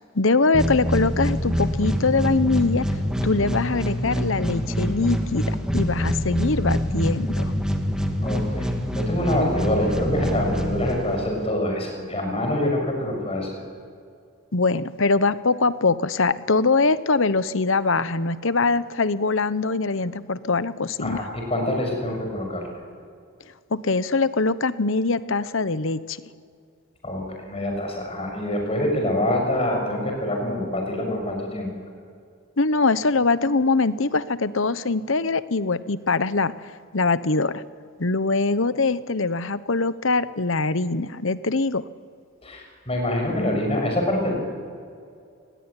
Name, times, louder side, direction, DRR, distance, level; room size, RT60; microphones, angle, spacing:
voice 1, 0.1-2.9 3.2-7.5 14.5-21.2 23.7-26.2 32.6-36.5 36.9-37.6 38.0-41.8, left 3 dB, 65° left, 15 dB, 1.0 m, -22 dB
sound 1, 0.5-11.5, equal, 5° right, 2.2 m, -25 dB
voice 2, 8.2-13.6 21.0-22.7 27.0-31.7 42.4-44.3, left 1 dB, 25° left, 2 dB, 6.8 m, -25 dB
29.5 x 20.5 x 9.9 m, 2.4 s
head